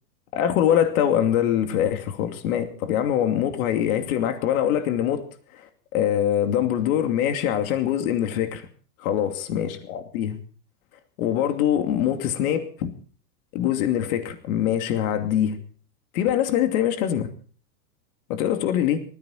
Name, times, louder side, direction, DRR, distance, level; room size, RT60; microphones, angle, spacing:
voice 1, 0.3-5.2 5.9-8.7 9.0-10.4 11.2-12.9 13.5-15.6 16.1-17.3 18.3-19.0, left 10 dB, 55° left, 6 dB, 2.7 m, -23 dB
19.5 x 15.0 x 4.3 m, 0.43 s
hypercardioid pair, 130°, 49 cm